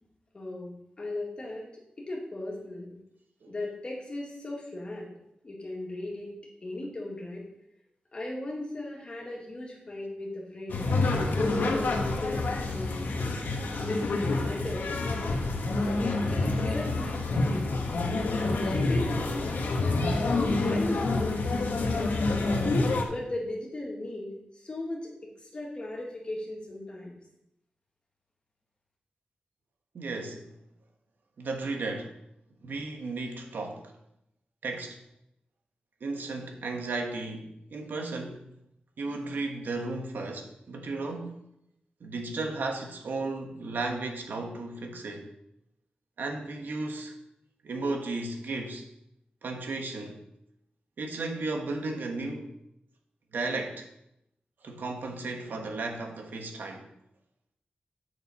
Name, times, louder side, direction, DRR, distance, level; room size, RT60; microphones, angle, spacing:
voice 1, 0.3-1.7 2.0-3.0 3.5-5.1 5.4-6.3 6.6-7.4 8.1-10.9 11.3-13.4 13.7-14.8 15.2-15.5 15.9-17.7 18.4-21.6 21.9-22.6 23.1-25.1 25.4-27.2, left 2 dB, 35° left, 2.1 m, -37 dB
sound 1, 10.7-23.0, left 2 dB, 85° left, 1.3 m, -28 dB
voice 2, 29.9-30.5 31.4-32.2 32.6-33.9 34.6-35.0 36.0-38.5 39.0-41.4 42.0-45.3 46.2-47.2 47.6-48.9 49.4-50.3 51.0-52.6 53.3-53.9 54.6-56.9, right 3 dB, 90° right, 1.3 m, -34 dB
9.3 x 6.5 x 4.3 m
wide cardioid pair, 165°, 3 cm